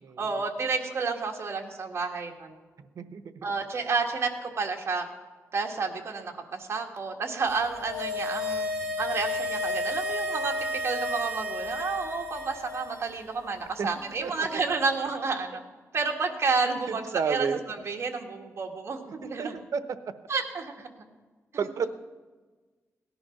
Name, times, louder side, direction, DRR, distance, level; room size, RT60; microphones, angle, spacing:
voice 1, 0.2-2.6 3.4-5.1 5.5-8.7 9.0-15.6 15.9-19.5 20.3-20.9, right 4 dB, 50° right, 1 dB, 1.7 m, -30 dB
voice 2, 2.8-3.5 13.8-13.9 14.2-14.3 16.7-17.6 19.1-19.8 21.6-21.9, right 6 dB, 75° right, 11 dB, 0.8 m, -31 dB
sound 1, 7.6-13.0 13.3-13.4, left 1 dB, 5° right, 4.4 m, -32 dB
17.5 x 11.0 x 5.8 m, 1.3 s
wide cardioid pair, 180°, 6 cm